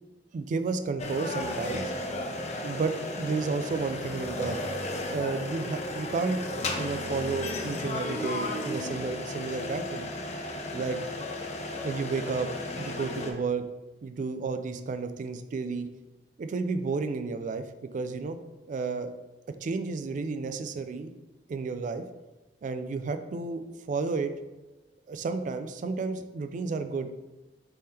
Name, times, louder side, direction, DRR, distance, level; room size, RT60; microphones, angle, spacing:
voice 1, 0.3-1.9 2.6-4.6 5.1-6.4 6.8-10.1 10.7-11.0 11.8-12.5 12.8-13.6 14.0-15.9 16.4-17.6 17.9-18.4 18.7-19.1 19.6-21.1 21.5-22.0 22.6-23.6 23.9-24.3 25.1-27.1, right 4 dB, 45° right, 8 dB, 0.3 m, -31 dB
sound 1, 1.0-13.3, left 2 dB, 40° left, 0.5 m, -34 dB
3.6 x 3.3 x 4.2 m, 1.1 s
head